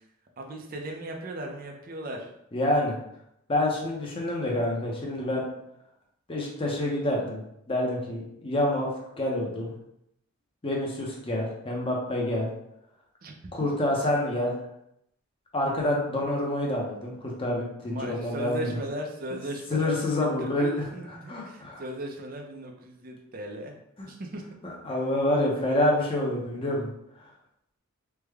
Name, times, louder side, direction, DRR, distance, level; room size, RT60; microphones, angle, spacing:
voice 1, 0.4-2.3 13.2-13.3 17.8-23.7 24.0-24.4, right 1 dB, 40° right, 2 dB, 0.5 m, -37 dB
voice 2, 2.5-3.0 3.5-5.4 6.3-7.4 7.7-8.9 9.2-9.7 10.6-12.5 13.5-14.5 15.5-18.7 19.7-20.9 21.3-21.8 24.0-24.1 24.6-26.9, left 1 dB, 25° left, -2 dB, 0.7 m, -27 dB
3.4 x 2.1 x 3.4 m, 0.78 s
head